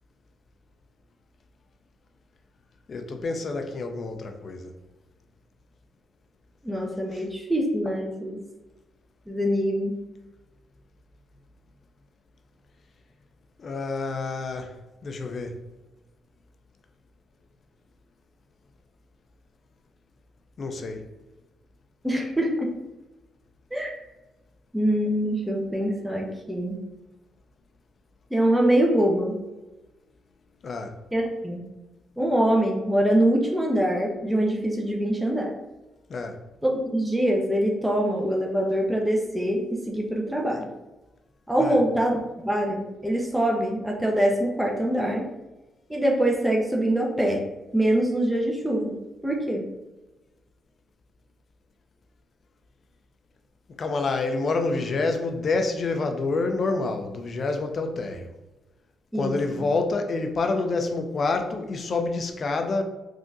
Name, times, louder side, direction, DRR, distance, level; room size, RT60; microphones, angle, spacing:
voice 1, 2.9-4.7 7.1-7.2 13.6-14.8 15.0-15.6 20.6-21.1 30.6-30.9 36.1-36.4 41.6-41.8 53.8-58.3 59.1-62.8, left 3 dB, 50° left, 0.5 m, -27 dB
voice 2, 6.6-8.4 9.3-10.0 22.0-22.7 23.7-23.9 24.7-26.8 28.3-29.4 31.1-31.6 32.2-35.5 36.6-40.7 41.5-45.2 45.9-47.4 47.7-49.0 49.2-49.6 59.1-59.7, right 1 dB, 5° right, 0.6 m, -24 dB
3.7 x 2.4 x 2.6 m
supercardioid pair, 55°, 0 cm